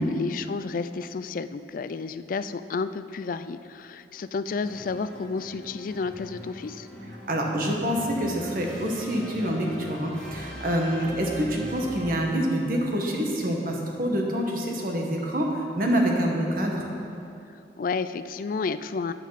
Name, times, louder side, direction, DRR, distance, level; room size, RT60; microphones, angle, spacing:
voice 1, 0.0-6.9 17.8-19.1, left 4 dB, 50° left, 13 dB, 0.4 m, -31 dB
sound 1, 4.6-12.5, equal, 5° left, 1.9 m, -41 dB
voice 2, 7.3-16.9, equal, 55° right, 0 dB, 1.6 m, -26 dB
13.5 x 9.4 x 4.1 m, 2.6 s
head